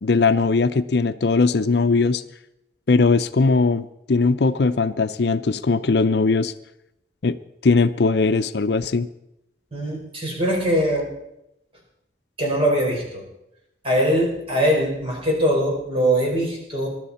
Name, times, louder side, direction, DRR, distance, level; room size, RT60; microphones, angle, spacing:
voice 1, 0.0-2.2 2.9-6.5 7.2-7.4 7.6-9.1, left 4 dB, 65° left, 12 dB, 0.6 m, -19 dB
voice 2, 9.7-11.1 12.4-13.2 13.8-16.9, equal, 30° right, -2 dB, 4.9 m, -22 dB
21.0 x 12.0 x 4.3 m, 0.84 s
head